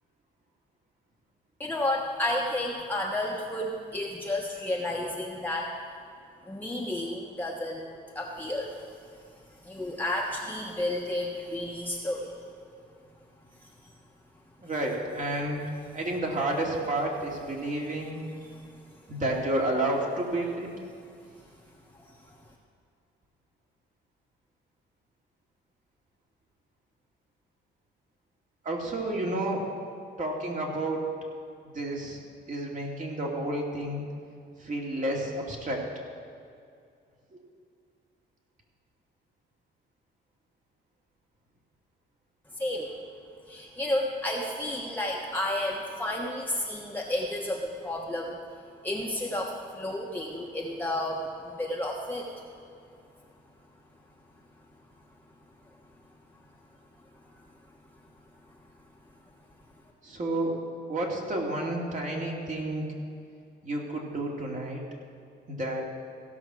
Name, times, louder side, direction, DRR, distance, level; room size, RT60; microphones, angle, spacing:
voice 1, 1.6-5.7 6.4-8.8 9.6-12.3 13.6-13.9 18.5-18.7 22.3-22.4 42.6-43.0 43.5-48.4 48.8-52.3, left 1 dB, 10° left, -2 dB, 1.2 m, -32 dB
voice 2, 14.6-15.7 15.9-18.2 19.1-20.7 28.6-29.7 30.2-31.1 31.6-32.2 32.5-34.1 34.6-35.9 37.3-37.4 60.0-60.6 60.9-62.9 63.6-64.8 65.5-65.9, right 1 dB, 40° right, -1 dB, 2.5 m, -30 dB
16.0 x 6.2 x 6.2 m, 2.4 s
cardioid pair, 90°, 20 cm